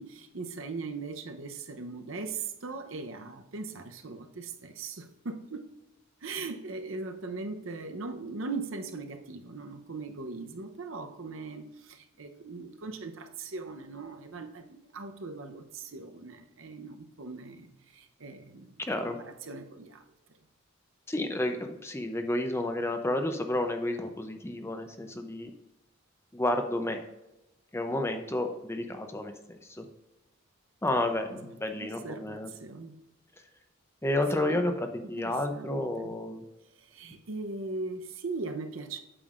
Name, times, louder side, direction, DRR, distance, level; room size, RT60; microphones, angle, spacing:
voice 1, 0.0-5.7 6.2-18.7 19.0-20.0 31.8-33.0 34.3-34.8 35.2-36.2 36.8-39.0, right 3 dB, 65° right, 0.8 m, -39 dB
voice 2, 18.8-19.2 21.1-25.5 26.3-27.1 27.7-29.9 30.8-32.5 34.0-36.4, left 1 dB, 10° left, 0.6 m, -31 dB
8.7 x 6.8 x 2.5 m
head